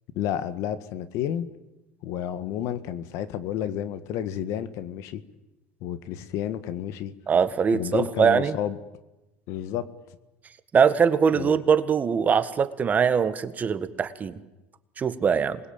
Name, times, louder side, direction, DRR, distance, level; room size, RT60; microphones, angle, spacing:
voice 1, 0.1-1.5 2.0-5.2 5.8-7.1 7.7-8.8 9.5-9.9 11.3-11.5, left 10 dB, 60° left, 13 dB, 1.7 m, -31 dB
voice 2, 7.3-8.5 10.7-14.3 15.0-15.6, right 6 dB, 30° right, 11 dB, 1.6 m, -22 dB
27.0 x 21.0 x 8.9 m, 1.0 s
supercardioid pair, 115°, 6 cm